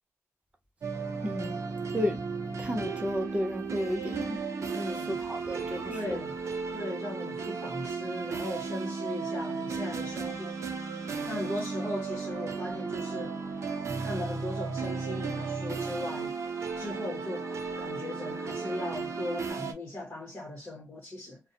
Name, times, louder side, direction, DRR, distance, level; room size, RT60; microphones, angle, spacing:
sound 1, 0.8-19.7, right 5 dB, 65° right, 0.5 m, -35 dB
sound 2, 0.9-19.5, equal, 5° left, 1.2 m, -50 dB
voice 1, 1.2-1.6 1.9-2.2 2.6-4.4 5.1-6.2, equal, 20° right, 0.6 m, -32 dB
voice 2, 4.7-5.2 5.9-6.4 6.7-10.6 11.3-13.4 14.0-16.3 16.7-17.5 17.8-21.4, left 1 dB, 30° left, 1.0 m, -38 dB
2.5 x 2.1 x 2.6 m
wide cardioid pair, 125°, 5 cm